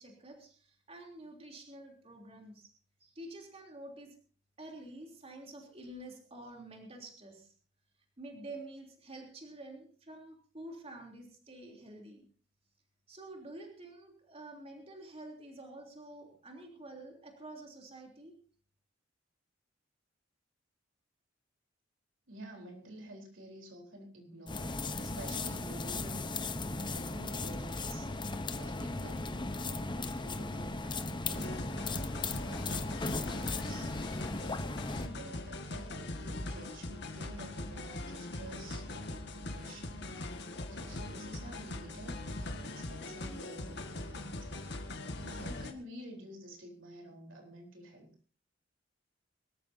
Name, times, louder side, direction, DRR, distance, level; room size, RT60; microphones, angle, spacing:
voice 1, 0.0-2.7 3.0-4.2 4.6-7.5 8.2-12.2 13.1-18.3, right 1 dB, 30° right, 1 dB, 3.4 m, -49 dB
voice 2, 22.3-31.7 32.4-34.1 35.0-40.0 40.7-44.5 45.2-48.1, right 1 dB, 80° right, 1 dB, 4.0 m, -50 dB
sound 1, 24.5-35.1, left 3 dB, 25° left, 0.9 m, -37 dB
sound 2, 31.3-45.7, left 2 dB, 60° left, 1.9 m, -41 dB
24.5 x 13.5 x 2.8 m, 0.40 s
head